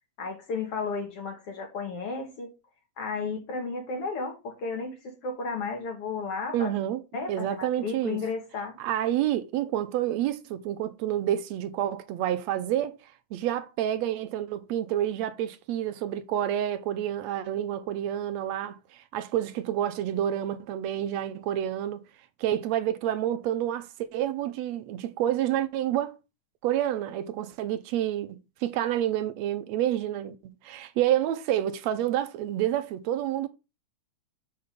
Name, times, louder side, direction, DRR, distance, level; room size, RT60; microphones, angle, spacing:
voice 1, 0.2-2.5 3.0-6.7 7.1-8.8, left 4 dB, 50° left, 3.0 m, -33 dB
voice 2, 6.5-7.0 7.3-8.2 8.8-13.0 13.3-22.1 22.4-26.2 26.6-30.4 30.6-33.5, right 11 dB, 75° right, 1.7 m, -28 dB
6.6 x 5.6 x 6.7 m
omnidirectional pair, 3.7 m